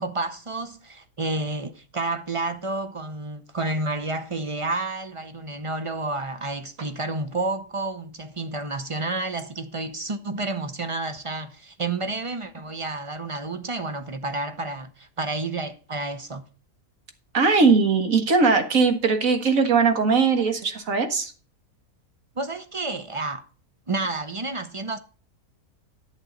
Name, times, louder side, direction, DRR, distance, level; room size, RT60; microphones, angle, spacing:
voice 1, 0.0-16.4 22.4-23.4 23.9-25.0, right 2 dB, 30° right, 0.6 m, -30 dB
voice 2, 17.3-21.3, right 4 dB, 60° right, 1.9 m, -20 dB
11.0 x 8.3 x 3.9 m
omnidirectional pair, 1.6 m